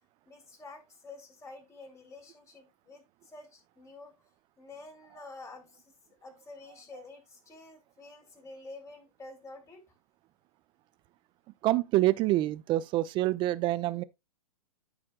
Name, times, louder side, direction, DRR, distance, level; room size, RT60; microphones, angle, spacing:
voice 1, 0.3-4.1 4.6-5.9 6.2-9.8, left 3 dB, 15° left, 3.1 m, -49 dB
voice 2, 11.6-14.0, right 16 dB, 25° right, 0.5 m, -26 dB
14.0 x 5.1 x 2.3 m
figure-of-eight pair, 110°, 19 cm